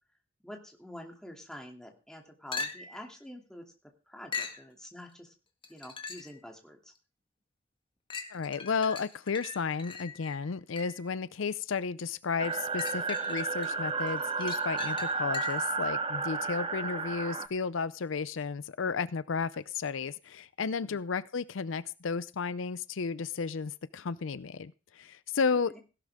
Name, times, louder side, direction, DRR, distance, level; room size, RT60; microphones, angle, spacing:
voice 1, 0.4-3.6 4.1-5.3 5.7-6.9 20.8-21.0 25.5-25.8, left 1 dB, 5° left, 2 dB, 2.7 m, -47 dB
sound 1, 2.5-3.1 4.3-4.7 5.6-6.4 7.0-7.1 8.1-11.1 12.4-13.7 14.1-15.8 19.5-19.6, left 5 dB, 25° left, 1.7 m, -41 dB
voice 2, 8.3-25.8, left 5 dB, 70° left, 17 dB, 0.5 m, -33 dB
sound 2, 12.4-17.5, right 4 dB, 25° right, 0.9 m, -32 dB
16.5 x 11.5 x 3.6 m, 0.33 s
head